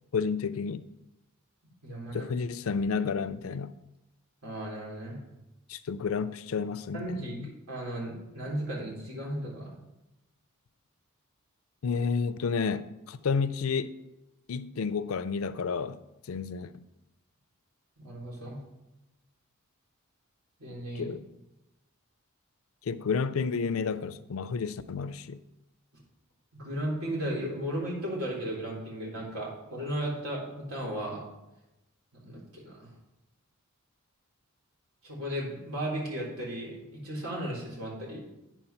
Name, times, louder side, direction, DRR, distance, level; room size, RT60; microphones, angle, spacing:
voice 1, 0.1-0.9 2.1-3.7 5.7-7.0 11.8-14.0 14.5-16.0 16.3-16.8 21.0-21.2 22.8-25.4, left 5 dB, 70° left, 0.4 m, -31 dB
voice 2, 1.8-2.3 4.4-5.3 6.9-7.4 7.7-9.7 18.0-18.6 20.6-21.2 26.5-30.4 30.7-31.2 32.1-32.9 35.0-38.2, right 1 dB, 85° right, 3.2 m, -35 dB
9.1 x 4.6 x 5.7 m
head